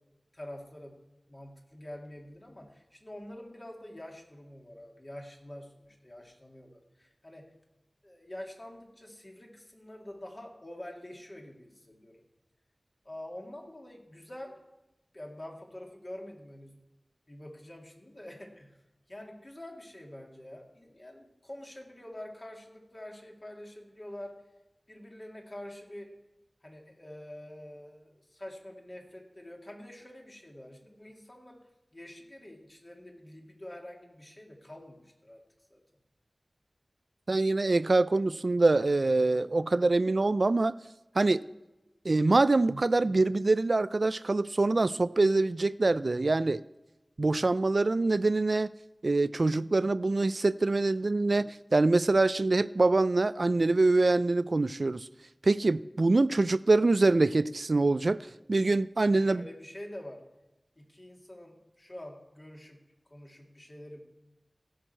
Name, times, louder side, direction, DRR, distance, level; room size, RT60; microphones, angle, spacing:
voice 1, 0.3-0.9 1.3-7.5 8.0-12.2 13.0-14.6 15.1-16.8 17.3-18.8 19.1-24.4 24.9-26.1 26.6-31.6 31.9-35.4 35.7-35.8 59.1-60.2 60.8-62.8 63.1-64.0, left 1 dB, 40° left, 2.5 m, -46 dB
voice 2, 37.3-40.7 41.2-41.4 42.1-46.6 47.2-48.7 49.0-55.1 55.4-58.2 58.5-59.4, right 2 dB, 65° right, 0.3 m, -25 dB
16.0 x 6.4 x 4.4 m
wide cardioid pair, 45°, 0 cm